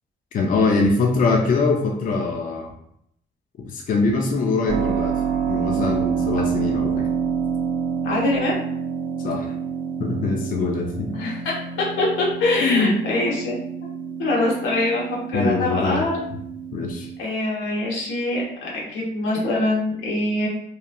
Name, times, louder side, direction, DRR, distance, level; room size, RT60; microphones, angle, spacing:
voice 1, 0.3-2.7 3.6-5.1 5.5-7.1 9.2-9.5 10.0-11.1 12.6-12.9 15.3-16.0 16.7-17.1, left 3 dB, 45° left, 0 dB, 0.4 m, -22 dB
Keyboard (musical), 4.7-17.2, right 7 dB, 65° right, 0.4 m, -28 dB
voice 2, 8.0-8.5 11.1-13.5 13.8-13.9 14.2-15.1 15.3-16.2 17.2-20.5, left 2 dB, 85° left, -4 dB, 0.9 m, -24 dB
2.9 x 2.3 x 2.3 m, 0.72 s
cardioid pair, 90°, 20 cm